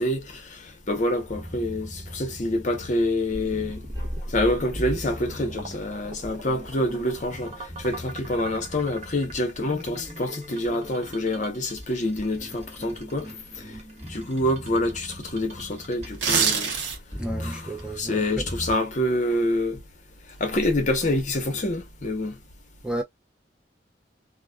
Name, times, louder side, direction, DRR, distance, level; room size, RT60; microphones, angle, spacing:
voice 1, 0.0-3.8 4.3-13.7 14.0-16.7 17.4-17.6 18.0-19.8 20.4-22.4, left 1 dB, 45° left, 0.8 m, -27 dB
sound 1, 1.2-16.4 16.9-18.8, equal, 20° right, 1.5 m, -40 dB
sound 2, 3.3-17.4, right 2 dB, 40° right, 0.7 m, -44 dB
sound 3, 16.1-17.2 17.6-17.8, right 6 dB, 80° right, 0.7 m, -24 dB
voice 2, 17.2-18.5 22.8-23.0, right 1 dB, 5° right, 0.4 m, -32 dB
2.5 x 2.3 x 2.2 m
head